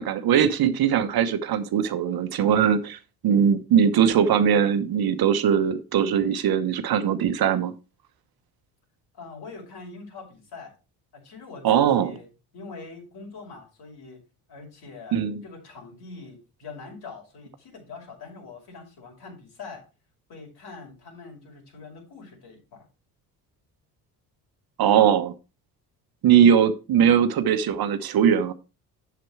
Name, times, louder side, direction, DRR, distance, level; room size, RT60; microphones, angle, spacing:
voice 1, 0.0-7.7 11.6-12.1 15.1-15.4 24.8-25.3 26.2-28.5, right 8 dB, 55° right, 1.1 m, -20 dB
voice 2, 9.1-10.7 11.1-12.3 12.5-14.2 14.5-19.8 20.3-22.8, left 4 dB, 55° left, 5.2 m, -43 dB
7.6 x 7.0 x 4.7 m
hypercardioid pair, 60°, 45 cm